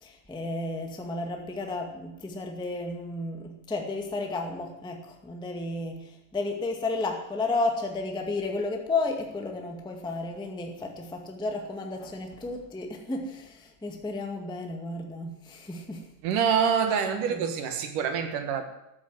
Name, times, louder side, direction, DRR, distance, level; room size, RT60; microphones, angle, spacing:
voice 1, 0.0-16.1 17.3-17.4, left 2 dB, 5° left, 0.7 m, -32 dB
voice 2, 16.2-18.6, right 7 dB, 70° right, 2.9 m, -26 dB
13.5 x 12.0 x 7.8 m
omnidirectional pair, 4.1 m